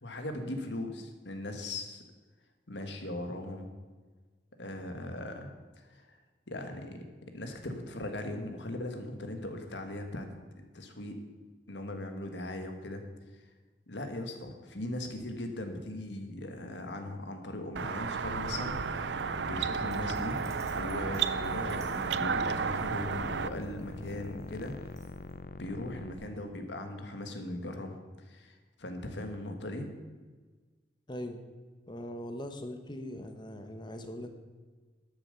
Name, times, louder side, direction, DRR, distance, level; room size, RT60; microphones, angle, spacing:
voice 1, 0.0-2.0 2.7-3.7 4.6-5.5 5.8-6.2 6.5-7.0 7.3-10.3 10.6-11.2 11.7-13.0 13.3-13.5 13.9-20.4 20.7-24.7 25.5-29.9, left 1 dB, 85° left, 5 dB, 1.7 m, -39 dB
sound 1, 17.8-23.5, right 6 dB, 80° right, 0.5 m, -33 dB
sound 2, 18.2-26.1, left 2 dB, 55° left, 0.6 m, -43 dB
Dog, 19.8-25.3, right 1 dB, 15° right, 2.0 m, -56 dB
voice 2, 31.1-31.4 31.9-34.3, left 1 dB, 25° left, 6 dB, 1.0 m, -40 dB
12.0 x 7.3 x 6.8 m, 1.4 s
head